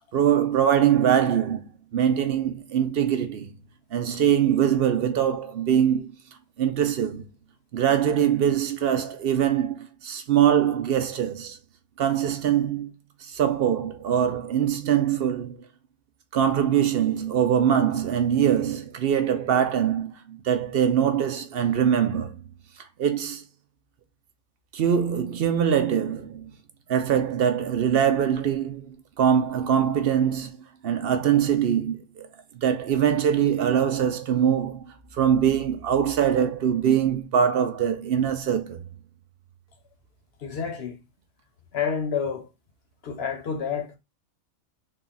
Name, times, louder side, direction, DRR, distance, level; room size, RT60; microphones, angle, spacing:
voice 1, 0.1-1.7 1.9-3.5 3.9-6.1 6.6-7.2 7.7-11.6 12.0-12.9 13.3-15.6 16.3-22.4 23.0-23.4 24.7-26.5 26.9-30.5 30.8-32.3 32.6-34.9 35.1-38.8, right 9 dB, 60° right, 0.6 m, -23 dB
voice 2, 40.4-41.0 41.7-42.5 43.0-44.0, left 6 dB, 50° left, 1.0 m, -29 dB
3.7 x 2.4 x 3.9 m
omnidirectional pair, 1.5 m